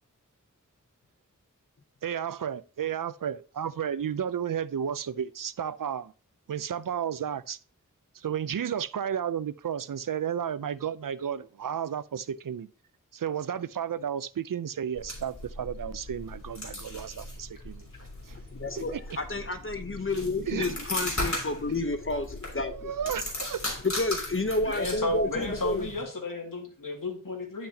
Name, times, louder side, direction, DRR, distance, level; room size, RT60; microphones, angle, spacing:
voice 1, 2.0-6.1 6.5-7.6 8.1-12.7 13.1-17.9 18.3-18.4 18.8-19.0 20.5-20.7 22.7-23.6, right 8 dB, 80° right, 0.5 m, -32 dB
sound 1, 14.9-26.0, left 1 dB, 55° left, 3.2 m, -38 dB
voice 2, 18.5-22.9 23.8-25.9, left 2 dB, 40° left, 0.9 m, -30 dB
voice 3, 24.7-27.7, left 2 dB, 80° left, 2.2 m, -33 dB
10.0 x 6.0 x 2.8 m
wide cardioid pair, 45°, 32 cm